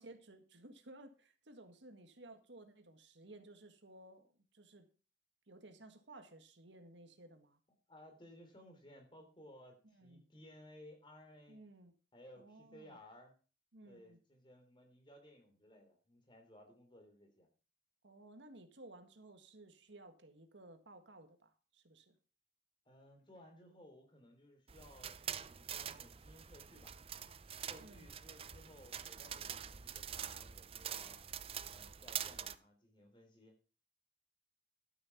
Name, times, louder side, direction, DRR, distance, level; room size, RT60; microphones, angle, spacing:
voice 1, 0.0-4.9 5.5-7.6 9.9-10.2 11.5-11.9 12.4-13.0 13.7-14.2 18.0-22.2 27.8-28.1, right 2 dB, 85° right, 7 dB, 1.8 m, -57 dB
voice 2, 7.9-11.6 12.1-13.4 13.8-17.5 22.8-26.9 27.6-31.2 31.7-33.5, left 1 dB, 25° left, 3 dB, 3.4 m, -59 dB
sound 1, 24.7-32.6, right 9 dB, 30° right, 0.5 m, -45 dB
12.5 x 7.7 x 5.9 m, 0.36 s
head